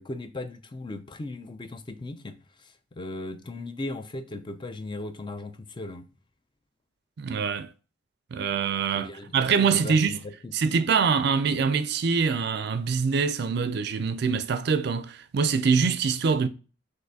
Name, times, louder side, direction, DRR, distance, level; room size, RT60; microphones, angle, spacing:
voice 1, 0.0-6.1 8.9-10.8, left 2 dB, 25° left, 0.4 m, -38 dB
voice 2, 7.2-7.7 8.3-10.2 10.5-16.5, right 5 dB, 60° right, 0.4 m, -24 dB
6.3 x 2.5 x 2.7 m
head